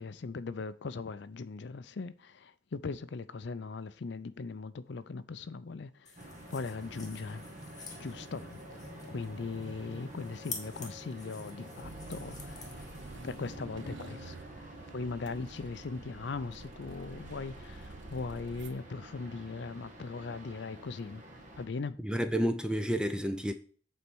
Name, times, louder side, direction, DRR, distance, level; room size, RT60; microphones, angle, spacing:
voice 1, 0.0-6.1 6.5-7.5 8.0-8.6 9.1-12.8 13.2-21.2 21.6-22.0, left 4 dB, 60° left, 0.4 m, -39 dB
sound 1, 6.1-13.6, left 5 dB, 20° left, 1.7 m, -49 dB
sound 2, 6.2-21.7, right 1 dB, 40° right, 1.5 m, -48 dB
sound 3, 11.8-18.7, right 2 dB, 65° right, 0.9 m, -49 dB
voice 2, 22.0-23.5, equal, 5° right, 0.5 m, -30 dB
8.4 x 4.3 x 6.1 m
head